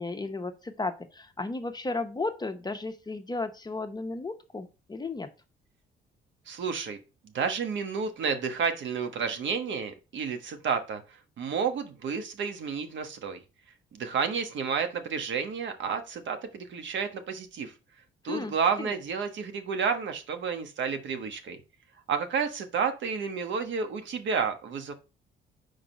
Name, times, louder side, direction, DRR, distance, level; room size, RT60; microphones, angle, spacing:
voice 1, 0.0-5.3 18.2-18.5 18.8-18.9, left 3 dB, 20° left, 7 dB, 0.8 m, -34 dB
voice 2, 6.5-7.0 7.3-11.0 11.4-13.4 13.9-17.7 18.2-21.6 22.1-24.9, right 6 dB, 70° right, 7 dB, 1.2 m, -31 dB
4.7 x 4.6 x 5.2 m, 0.30 s
cardioid pair, 90°, 20 cm